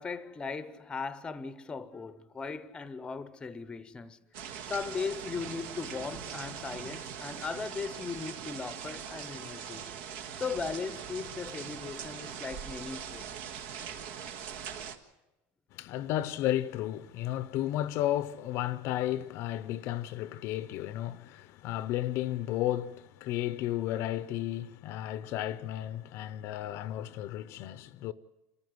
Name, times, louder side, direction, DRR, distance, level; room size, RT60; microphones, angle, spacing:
voice 1, 0.0-4.2 4.7-9.8 10.4-13.3, left 5 dB, 15° left, 0.8 m, -38 dB
sound 1, 4.3-15.0, right 8 dB, 70° right, 1.6 m, -41 dB
voice 2, 15.7-28.1, left 13 dB, 50° left, 0.7 m, -33 dB
27.5 x 14.5 x 7.9 m
cardioid pair, 155°, 6 cm